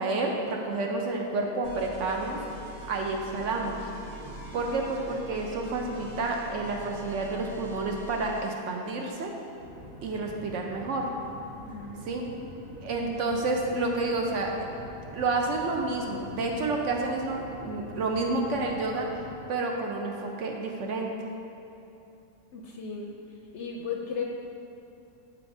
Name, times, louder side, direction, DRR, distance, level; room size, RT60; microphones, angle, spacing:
voice 1, 0.0-2.4 2.9-3.9 4.5-9.3 10.0-11.1 12.1-12.2 12.8-14.7 15.1-19.1 19.5-21.1, right 3 dB, 70° right, 1 dB, 0.8 m, -29 dB
sound 1, 1.6-8.6, equal, 30° right, 0.7 m, -43 dB
sound 2, 9.6-19.3, right 1 dB, 85° right, 1.7 m, -46 dB
voice 2, 11.6-12.6 12.9-13.2 22.5-23.2 23.5-24.2, left 5 dB, 65° left, 0 dB, 0.7 m, -37 dB
9.2 x 4.5 x 2.6 m, 2.8 s
omnidirectional pair, 1.5 m